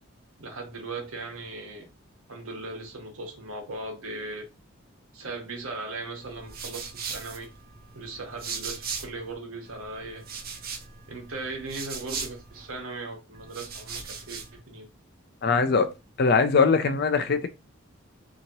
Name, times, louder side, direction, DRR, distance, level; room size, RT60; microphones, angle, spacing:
voice 1, 0.4-1.8 2.3-4.4 5.1-7.4 7.9-10.2 11.1-14.9, right 2 dB, 85° right, 1.1 m, -38 dB
sound 1, 6.2-9.3 9.6-12.8 13.3-14.6, right 6 dB, 45° right, 0.6 m, -39 dB
voice 2, 15.4-15.9 16.2-17.5, left 4 dB, 50° left, 0.5 m, -21 dB
2.8 x 2.7 x 2.9 m
head